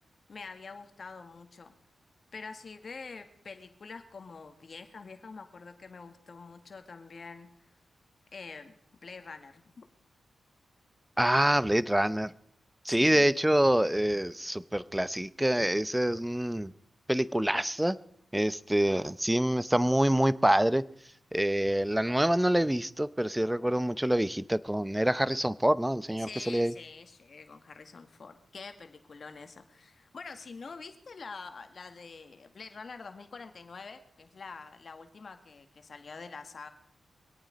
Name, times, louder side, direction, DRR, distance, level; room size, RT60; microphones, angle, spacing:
voice 1, 0.3-1.7 2.3-7.5 8.3-9.8 12.9-13.3 26.2-36.7, left 4 dB, 55° left, 1.9 m, -46 dB
voice 2, 11.2-12.3 12.8-16.7 17.1-18.0 18.3-20.8 21.3-26.7, right 1 dB, 10° right, 0.7 m, -26 dB
24.0 x 8.9 x 5.2 m
cardioid pair, 50°, 0 cm